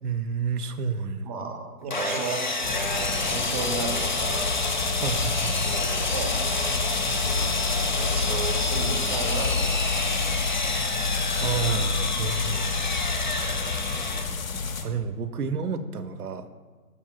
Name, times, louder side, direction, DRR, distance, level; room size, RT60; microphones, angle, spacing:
voice 1, 0.0-1.3 4.9-5.6 11.4-13.0 14.8-16.5, right 5 dB, 75° right, 9 dB, 0.7 m, -30 dB
voice 2, 1.2-4.5 5.6-10.2 13.3-13.6, right 4 dB, 25° right, 2 dB, 0.7 m, -35 dB
Sawing, 1.9-14.2, left 2 dB, 35° left, 0.4 m, -29 dB
sound 1, 2.6-14.8, left 4 dB, 60° left, 0.9 m, -29 dB
14.0 x 4.8 x 2.2 m, 1.4 s
figure-of-eight pair, 140°, 46 cm